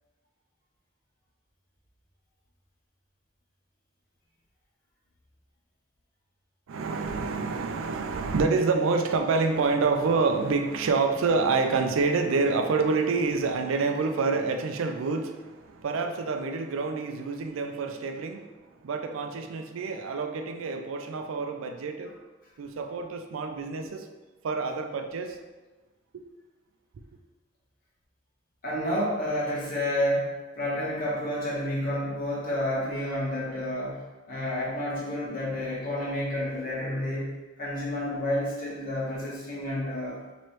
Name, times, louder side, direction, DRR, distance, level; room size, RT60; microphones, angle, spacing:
voice 1, 6.7-22.2 22.6-24.1 24.4-25.4, right 4 dB, 80° right, 6 dB, 0.4 m, -27 dB
voice 2, 28.6-40.2, left 1 dB, 45° left, -6 dB, 1.2 m, -30 dB
4.4 x 3.0 x 3.1 m, 1.2 s
head